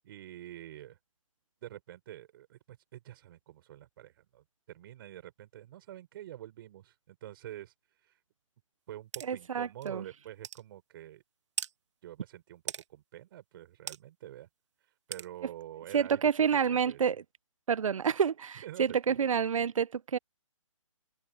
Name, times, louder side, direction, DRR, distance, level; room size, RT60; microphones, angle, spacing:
voice 1, 0.0-1.0 1.6-7.7 8.0-8.2 8.9-11.2 12.0-14.5 15.1-16.2 16.6-17.0 18.6-19.2, right 13 dB, 45° right, 4.6 m, -47 dB
sound 1, 9.1-9.3 9.8-9.9 10.4-10.6 11.6-11.7 12.7-12.8 13.9-14.0 15.1-15.3, right 8 dB, 60° right, 1.8 m, -37 dB
voice 2, 9.2-10.0 15.9-17.2 17.7-20.2, right 7 dB, 75° right, 0.7 m, -28 dB
hypercardioid pair, 145°, 17 cm